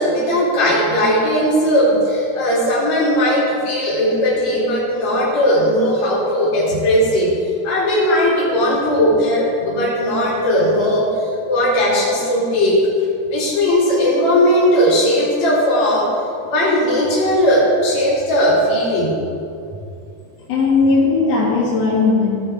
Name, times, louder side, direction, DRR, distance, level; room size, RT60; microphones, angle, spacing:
voice 1, 0.0-7.3 7.6-11.1 11.5-12.9 13.3-16.1 16.4-19.1, equal, 50° left, -7 dB, 4.0 m, -17 dB
voice 2, 20.5-22.3, left 4 dB, 80° left, -6 dB, 3.8 m, -16 dB
17.0 x 5.9 x 4.7 m, 2.6 s
omnidirectional pair, 4.3 m